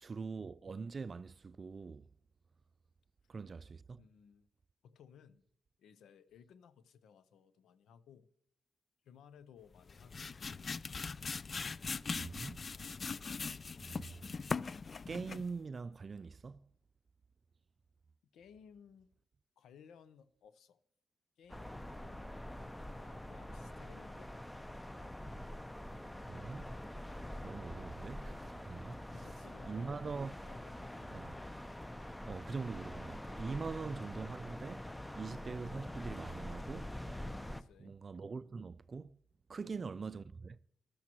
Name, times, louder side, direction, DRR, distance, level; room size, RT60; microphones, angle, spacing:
voice 1, 0.0-2.1 3.3-4.0 12.1-12.6 13.2-13.5 13.8-14.3 15.1-16.6 26.3-26.7 27.4-29.1 29.7-30.3 31.1-31.3 32.3-34.9 35.2-36.9 37.8-39.2 39.5-40.6, right 4 dB, 50° right, 0.3 m, -43 dB
voice 2, 4.0-4.5 4.8-5.4 5.8-8.3 9.0-10.4 18.3-19.1 19.6-20.8 21.4-22.5 23.0-24.6 29.0-30.1 30.4-31.2 37.5-37.9 39.5-40.2, left 7 dB, 85° left, 0.7 m, -60 dB
sound 1, 9.8-15.6, left 4 dB, 50° left, 0.4 m, -41 dB
sound 2, 21.5-37.6, left 1 dB, 10° left, 0.7 m, -45 dB
14.5 x 12.0 x 3.0 m
supercardioid pair, 50°, 0 cm